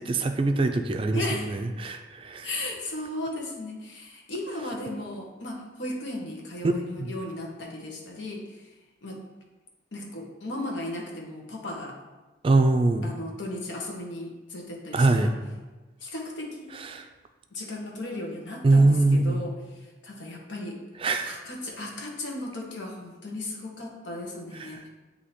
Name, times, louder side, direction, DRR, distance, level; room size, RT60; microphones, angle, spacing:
voice 1, 0.0-2.5 7.0-7.1 12.4-13.1 14.9-15.3 16.7-17.1 18.6-19.4 21.0-21.3 24.6-24.7, right 2 dB, 30° right, 6 dB, 0.4 m, -23 dB
voice 2, 1.1-1.7 2.4-8.7 9.0-9.2 9.9-12.0 13.0-15.3 16.0-16.7 17.5-20.8 21.2-24.9, left 1 dB, 80° left, 0 dB, 1.2 m, -36 dB
8.2 x 2.8 x 4.3 m, 1.2 s
head